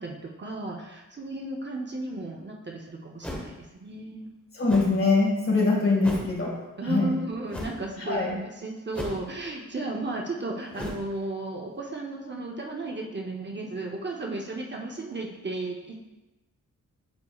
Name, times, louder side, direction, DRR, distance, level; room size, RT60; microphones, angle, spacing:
voice 1, 0.0-4.3 6.8-16.0, right 2 dB, 35° right, 0 dB, 0.7 m, -34 dB
sound 1, 3.2-3.7 4.7-5.0 6.0-6.4 7.5-7.8 8.9-9.4 10.7-11.1, left 1 dB, 5° left, 1.0 m, -36 dB
voice 2, 4.5-6.6 6.8-7.2 8.0-8.3, left 3 dB, 40° left, -3 dB, 1.8 m, -23 dB
10.5 x 4.3 x 2.3 m, 1.0 s
wide cardioid pair, 130°, 32 cm